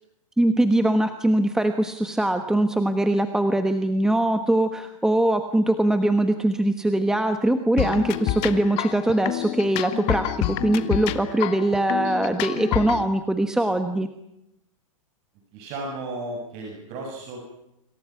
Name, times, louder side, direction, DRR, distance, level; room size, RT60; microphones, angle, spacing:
voice 1, 0.4-14.1, right 1 dB, 5° right, 7 dB, 1.3 m, -22 dB
sound 1, 7.8-13.0, left 14 dB, 35° left, 2.0 m, -28 dB
voice 2, 15.5-17.4, right 2 dB, 35° right, 1 dB, 7.2 m, -34 dB
27.0 x 26.5 x 5.9 m, 0.85 s
hypercardioid pair, 150°, 18 cm